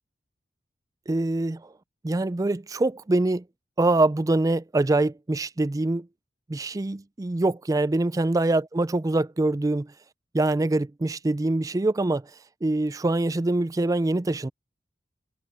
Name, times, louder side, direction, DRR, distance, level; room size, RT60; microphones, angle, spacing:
voice 1, 1.1-1.7 2.0-3.4 3.8-6.1 6.5-9.9 10.3-12.3 12.6-14.5, right 2 dB, 20° right, 0.4 m, -24 dB
head